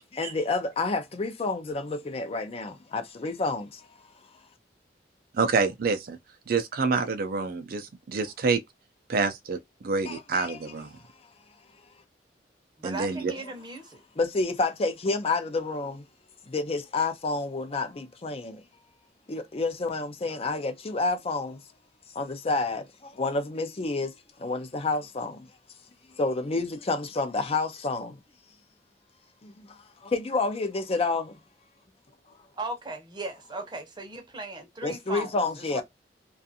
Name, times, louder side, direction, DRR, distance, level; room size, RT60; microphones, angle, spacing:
voice 1, 0.1-4.4 10.0-10.6 10.9-11.3 14.2-16.1 16.5-18.6 19.3-21.6 22.1-25.5 26.1-28.2 29.4-31.4 32.3-32.4 34.8-35.8, left 3 dB, 35° left, 0.5 m, -29 dB
voice 2, 5.3-6.2 6.5-8.6 9.1-9.6 9.8-10.9 12.8-13.3, right 4 dB, 55° right, 0.4 m, -27 dB
voice 3, 12.8-14.0 32.6-35.8, right 2 dB, 25° right, 0.7 m, -37 dB
2.5 x 2.3 x 2.6 m
head